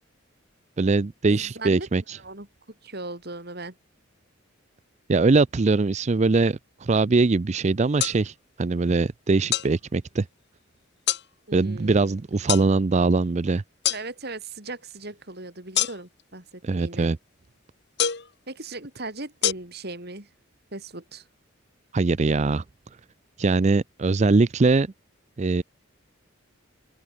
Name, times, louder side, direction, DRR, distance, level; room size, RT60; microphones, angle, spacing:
voice 1, 0.8-2.2 5.1-10.3 11.5-13.6 16.6-17.2 21.9-22.6 23.4-24.9 25.4-25.6, right 3 dB, 35° right, 0.4 m, -22 dB
voice 2, 1.3-1.9 2.2-2.5 2.8-3.7 11.5-12.2 13.9-17.1 18.5-20.3 20.7-21.3, right 2 dB, 50° right, 4.9 m, -38 dB
sound 1, 8.0-8.2 9.5-9.7 11.1-11.3 12.5-12.7 13.8-14.0 15.7-16.2 18.0-18.3 19.4-19.5, left 10 dB, 55° left, 2.1 m, -24 dB
open air
head